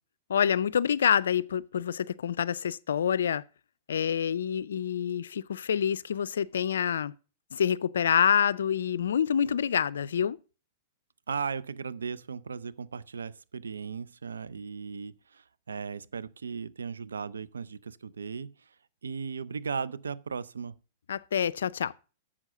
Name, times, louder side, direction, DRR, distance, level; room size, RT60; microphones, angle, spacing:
voice 1, 0.3-3.4 3.9-7.1 7.5-10.4 21.1-21.9, left 8 dB, 80° left, 0.4 m, -27 dB
voice 2, 11.3-18.5 19.0-20.8, right 6 dB, 85° right, 0.5 m, -37 dB
7.4 x 6.3 x 6.6 m
hypercardioid pair, 110°, 0 cm